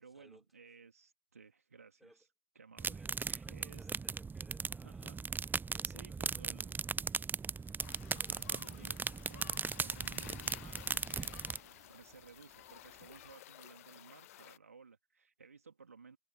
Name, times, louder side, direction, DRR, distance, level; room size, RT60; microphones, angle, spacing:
voice 1, 0.0-2.3 2.5-3.9 4.8-5.2 5.8-6.7 8.1-9.0 9.3-16.2, right 5 dB, 85° right, 3.2 m, -58 dB
sound 1, 2.8-11.6, right 5 dB, 25° right, 0.6 m, -38 dB
voice 2, 2.9-5.2 5.5-7.3 7.9-8.9, equal, ahead, 4.6 m, -63 dB
sound 2, 6.2-13.4, right 11 dB, 50° right, 4.4 m, -68 dB
sound 3, 7.8-14.6, left 15 dB, 75° left, 0.5 m, -54 dB
figure-of-eight pair, 50°, 8 cm